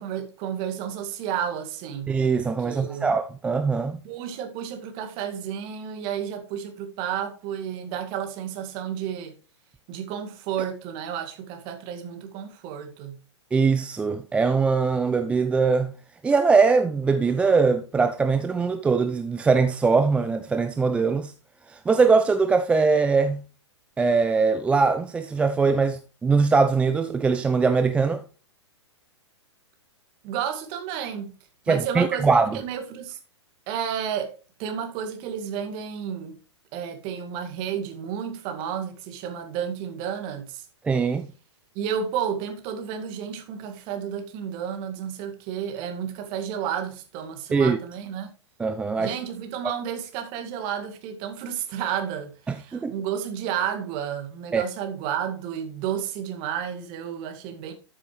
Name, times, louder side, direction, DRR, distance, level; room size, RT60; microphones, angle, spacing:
voice 1, 0.0-2.2 2.6-3.1 4.0-9.4 9.9-13.2 30.2-31.3 31.7-33.2 33.7-36.4 36.7-40.7 41.7-48.3 49.0-57.7, right 8 dB, 35° right, 2.1 m, -31 dB
voice 2, 2.1-4.0 13.5-15.9 16.2-21.3 21.7-23.4 24.0-28.2 31.7-32.5 40.8-41.3 47.5-47.8 48.6-49.1 52.7-52.9 54.5-54.6, right 4 dB, 10° right, 0.4 m, -21 dB
13.0 x 6.7 x 3.2 m
figure-of-eight pair, 110°, 15 cm